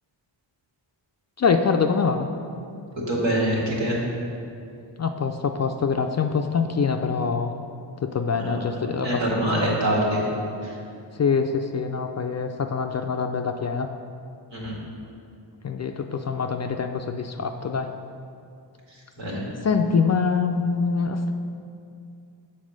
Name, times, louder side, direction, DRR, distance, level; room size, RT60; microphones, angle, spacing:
voice 1, 1.4-2.3 5.0-7.5 8.0-9.2 11.1-13.9 15.6-17.9 19.6-21.3, left 5 dB, 40° left, 6 dB, 0.4 m, -24 dB
voice 2, 2.9-4.0 8.3-8.6 9.0-10.2 10.6-10.8 14.5-14.8 18.9-19.4, right 1 dB, 75° right, -4 dB, 2.0 m, -25 dB
7.3 x 4.2 x 6.3 m, 2.5 s
cardioid pair, 75°, 45 cm